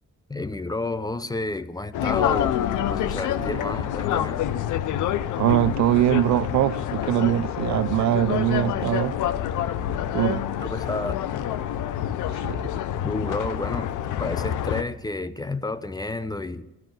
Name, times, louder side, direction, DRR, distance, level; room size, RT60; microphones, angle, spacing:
voice 1, 0.3-4.4 10.6-11.2 13.0-13.9 14.2-16.7, left 2 dB, 15° left, 0.6 m, -31 dB
sound 1, 1.9-14.8, left 10 dB, 85° left, 0.7 m, -27 dB
voice 2, 5.4-9.2 10.1-10.4 12.4-12.6, right 14 dB, 70° right, 0.5 m, -22 dB
13.5 x 5.9 x 9.1 m
cardioid pair, 90°, 30 cm